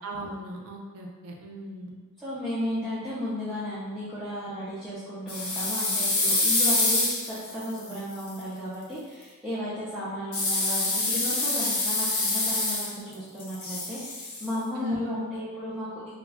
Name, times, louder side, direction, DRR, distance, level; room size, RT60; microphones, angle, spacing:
voice 1, 0.0-2.0 14.7-15.3, left 1 dB, 70° right, -1 dB, 0.5 m, -36 dB
voice 2, 2.2-15.9, equal, ahead, -13 dB, 0.5 m, -34 dB
sound 1, 5.3-8.3 10.3-13.1 13.4-14.5, left 2 dB, 75° left, 0.7 m, -26 dB
2.3 x 2.2 x 3.3 m, 1.3 s
head